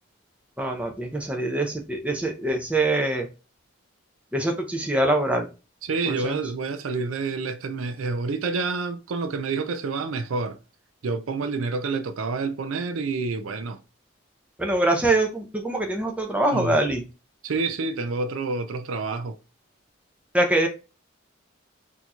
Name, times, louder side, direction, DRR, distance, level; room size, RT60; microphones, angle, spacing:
voice 1, 0.6-3.3 4.3-5.5 6.1-6.4 14.6-17.0 20.3-20.7, right 1 dB, 5° right, 0.6 m, -24 dB
voice 2, 5.8-10.6 11.0-13.8 16.5-16.8 17.4-19.4, right 4 dB, 80° right, 0.5 m, -28 dB
4.3 x 2.8 x 2.3 m
head